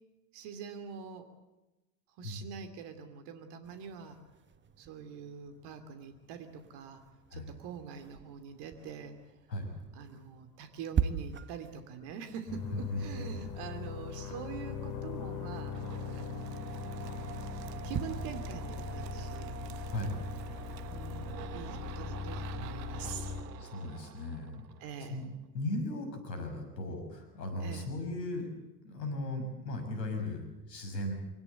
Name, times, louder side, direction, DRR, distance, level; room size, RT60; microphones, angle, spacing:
voice 1, 0.3-1.3 2.2-4.2 4.8-7.0 7.3-9.1 9.9-15.8 16.1-16.7 17.8-19.5 20.9-23.3 24.8-25.2 27.6-27.9, right 6 dB, 50° right, 8 dB, 2.9 m, -44 dB
sound 1, 3.6-20.4, right 7 dB, 20° right, 1.4 m, -43 dB
sound 2, 12.5-23.4, left 5 dB, 40° left, 7.4 m, -40 dB
voice 2, 12.7-13.4 19.9-20.2 23.6-24.6 25.0-25.3 25.5-28.5 28.8-31.1, left 1 dB, 80° left, 6 dB, 6.3 m, -37 dB
sound 3, 15.7-25.2, right 9 dB, 70° right, 1.3 m, -47 dB
24.0 x 19.0 x 8.2 m, 1.0 s
hypercardioid pair, 80°, 50 cm